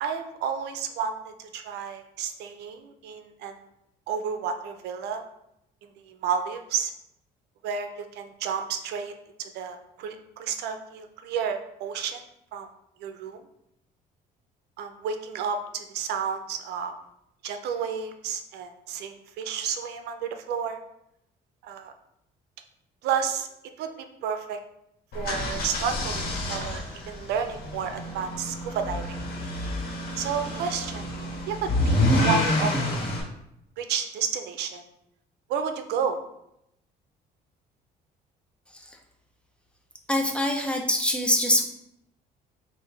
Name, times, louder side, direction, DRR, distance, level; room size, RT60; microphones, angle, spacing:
voice 1, 0.0-3.5 4.1-5.2 5.8-6.9 7.6-9.1 9.4-12.2 12.5-12.7 13.0-13.4 14.8-16.9 17.4-20.8 21.6-21.9 23.0-23.5 23.8-24.6 25.1-29.2 30.2-33.1 33.8-34.8 35.5-36.2, right 7 dB, 80° right, 7 dB, 0.5 m, -31 dB
sound 1, 25.1-33.2, left 1 dB, 65° left, 1.4 m, -28 dB
voice 2, 40.1-41.6, left 1 dB, 5° left, 2 dB, 0.6 m, -23 dB
5.4 x 2.6 x 3.2 m, 0.80 s
cardioid pair, 110°, 17 cm